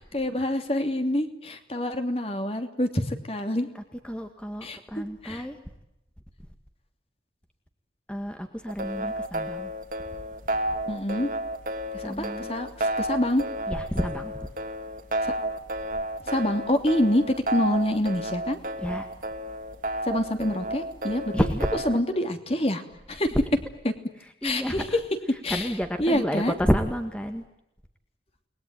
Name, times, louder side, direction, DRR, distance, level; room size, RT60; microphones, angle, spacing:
voice 1, 0.1-3.7 4.6-5.4 10.9-11.3 11.9-13.4 15.2-15.3 16.3-18.6 20.1-21.5 21.8-22.8 23.1-23.3 23.8-23.9 24.4-24.8 25.4-25.7 26.0-26.5, left 1 dB, 35° left, 6 dB, 2.9 m, -26 dB
voice 2, 3.7-5.6 8.1-9.7 12.0-12.5 13.7-14.5 18.8-19.1 21.3-21.8 24.4-25.0 25.5-27.4, equal, 5° left, 5 dB, 2.0 m, -29 dB
sound 1, 8.7-22.0, right 1 dB, 50° right, 2.7 m, -32 dB
30.0 x 21.0 x 9.4 m, 0.85 s
head